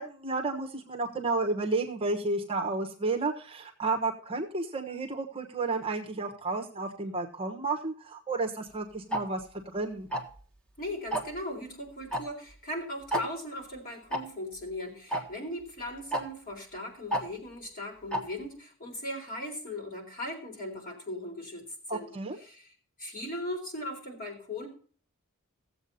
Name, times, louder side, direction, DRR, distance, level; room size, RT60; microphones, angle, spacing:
voice 1, 0.0-9.4 9.7-10.1 21.9-22.4, right 3 dB, 25° right, 3 dB, 1.2 m, -32 dB
Tick-tock, 9.1-9.2 10.1-10.4 11.1-11.4 12.1-12.2 12.5-12.6 13.1-13.2 14.1-14.2 15.1-15.2 16.1-16.2 17.1-17.2 18.1-18.2, equal, 5° left, 1.5 m, -29 dB
voice 2, 10.8-21.6 21.9-22.2 22.4-22.7 23.0-24.7, left 1 dB, 40° left, 1 dB, 3.9 m, -38 dB
16.0 x 7.7 x 4.1 m, 0.43 s
head